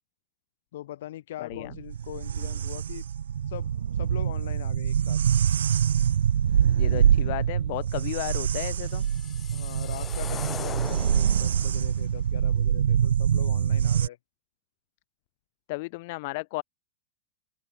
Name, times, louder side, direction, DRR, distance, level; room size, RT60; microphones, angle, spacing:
voice 1, 0.7-3.1 3.5-5.2 9.5-14.2, left 13 dB, 65° left, 3.3 m, -41 dB
voice 2, 1.4-1.8 6.8-9.1 15.7-16.6, left 24 dB, 50° left, 0.4 m, -34 dB
sound 1, 1.5-14.1, right 8 dB, 90° right, 0.4 m, -25 dB
sound 2, 5.2-11.4, right 9 dB, 20° right, 6.4 m, -64 dB
sound 3, 8.5-11.7, left 9 dB, 20° left, 1.9 m, -40 dB
open air
hypercardioid pair, 140°, 0 cm